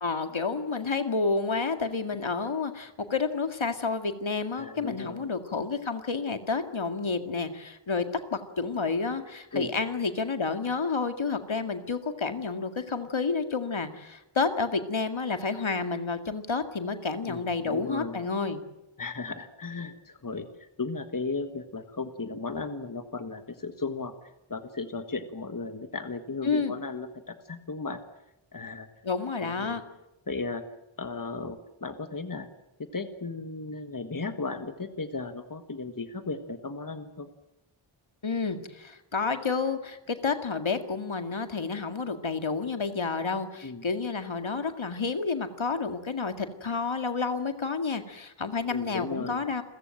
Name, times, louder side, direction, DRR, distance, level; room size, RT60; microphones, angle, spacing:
voice 1, 0.0-8.1 8.3-18.6 26.4-26.7 29.0-29.8 38.2-49.6, left 4 dB, 65° left, 8 dB, 2.1 m, -30 dB
voice 2, 4.6-5.3 9.5-9.7 17.3-18.3 19.0-24.1 24.5-28.0 28.5-28.9 29.4-29.8 30.3-30.6 31.0-32.5 32.8-37.3 43.6-43.8 48.7-49.4, left 3 dB, 40° left, 9 dB, 1.6 m, -35 dB
29.5 x 15.0 x 9.1 m, 0.92 s
wide cardioid pair, 60°, 50 cm